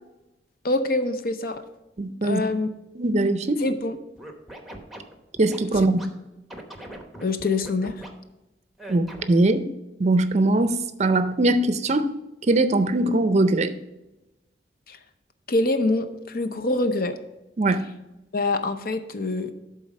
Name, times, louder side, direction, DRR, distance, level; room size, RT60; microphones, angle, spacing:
voice 1, 0.6-1.6 2.2-2.7 3.6-4.0 5.8-5.9 7.2-8.0 14.9-15.0 15.5-17.2 18.3-19.5, left 2 dB, 55° left, 9 dB, 0.7 m, -25 dB
voice 2, 2.0-2.4 3.0-3.6 5.4-6.0 8.9-9.7 10.0-12.1 12.5-13.7 17.6-17.8, right 2 dB, 40° right, 11 dB, 0.5 m, -21 dB
Scratching (performance technique), 4.2-6.1 6.5-8.1 8.8-9.4, right 1 dB, ahead, 0.9 m, -41 dB
11.0 x 4.0 x 5.2 m, 0.99 s
head